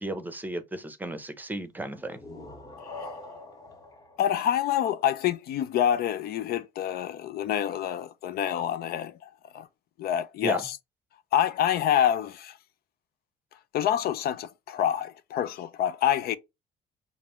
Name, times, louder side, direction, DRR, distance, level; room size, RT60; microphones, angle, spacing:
voice 1, 0.0-2.2 10.4-10.7, right 1 dB, 10° right, 0.7 m, -34 dB
sound 1, 1.9-5.5, left 2 dB, 20° left, 1.1 m, -45 dB
voice 2, 4.2-9.1 9.5-9.7 10.0-10.8 11.3-12.6 13.7-16.4, left 10 dB, 65° left, 0.5 m, -27 dB
5.2 x 2.6 x 3.0 m
cardioid pair, 110°, 17 cm